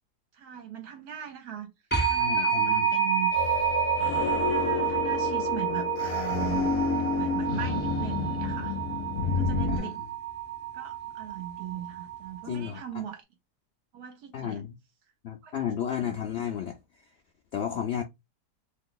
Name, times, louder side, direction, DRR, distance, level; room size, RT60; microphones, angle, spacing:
voice 1, 0.3-1.7 2.1-3.5 4.2-6.7 7.1-8.8 9.2-10.0 10.7-13.2 13.9-14.6 15.4-15.5, right 10 dB, 70° right, 1.2 m, -39 dB
sound 1, 1.9-12.5, right 8 dB, 15° left, 0.3 m, -29 dB
voice 2, 2.2-2.9 9.7-9.9 12.5-13.0 14.3-14.8 15.2-16.8 17.5-18.0, left 9 dB, 90° left, 0.5 m, -33 dB
sound 2, 3.3-9.8, left 4 dB, 70° left, 1.1 m, -29 dB
2.8 x 2.3 x 3.6 m
omnidirectional pair, 1.7 m